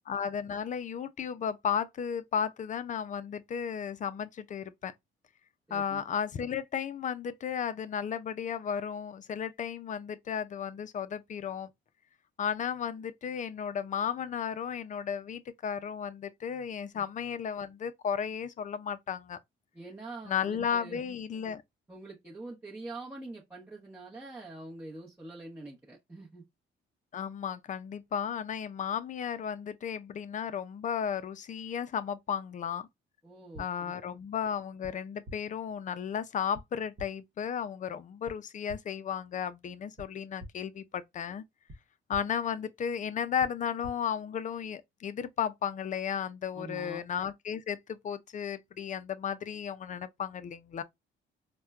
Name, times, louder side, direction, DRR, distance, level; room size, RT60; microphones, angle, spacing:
voice 1, 0.1-4.9 5.7-11.7 12.4-19.4 20.3-21.6 27.1-32.9 33.6-41.4 42.1-50.8, left 7 dB, 40° left, 0.4 m, -34 dB
voice 2, 5.7-6.0 16.9-17.0 19.7-21.0 21.9-26.4 33.2-33.9 46.5-47.0, right 2 dB, 10° right, 0.8 m, -45 dB
sound 1, 33.5-33.7 34.8-34.9 35.3-35.4 36.5-36.6 37.0-37.1 38.3-38.4 38.7-38.8 40.0-40.1 40.4-40.5 41.7-41.8 42.1-42.2 43.4-43.5 43.8-43.9, equal, 50° right, 1.0 m, -44 dB
4.2 x 2.1 x 2.3 m
cardioid pair, 90°, 20 cm